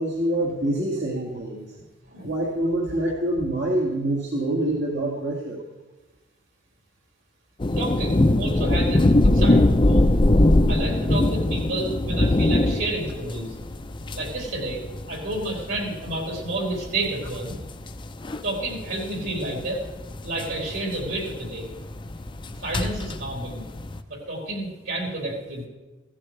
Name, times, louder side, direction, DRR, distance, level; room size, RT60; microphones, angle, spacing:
voice 1, 0.0-1.7 2.2-5.6, right 1 dB, 60° right, -3 dB, 2.1 m, -26 dB
sound 1, 7.6-24.0, left 1 dB, 25° left, 0.5 m, -22 dB
voice 2, 7.8-10.0 10.7-13.6 14.1-17.6 18.4-19.8 20.2-21.7 22.6-23.7 24.1-25.7, right 1 dB, 85° right, -2 dB, 4.7 m, -30 dB
16.5 x 15.0 x 3.3 m, 1.2 s
head